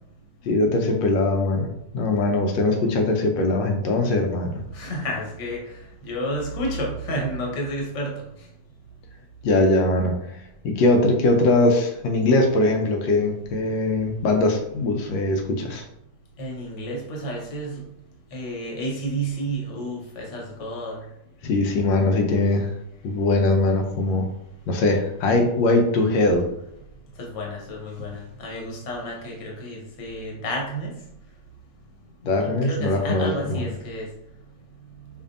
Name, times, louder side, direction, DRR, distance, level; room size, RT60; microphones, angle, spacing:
voice 1, 0.4-4.6 9.4-10.1 10.6-15.8 21.4-22.7 23.0-24.3 24.7-26.5 32.2-33.6, left 2 dB, 90° left, 3 dB, 1.3 m, -21 dB
voice 2, 4.7-5.6 6.0-8.1 16.4-17.8 18.3-21.0 27.2-30.9 32.4-34.1, right 1 dB, 50° left, -1 dB, 1.1 m, -30 dB
4.8 x 2.6 x 2.5 m, 0.80 s
omnidirectional pair, 1.9 m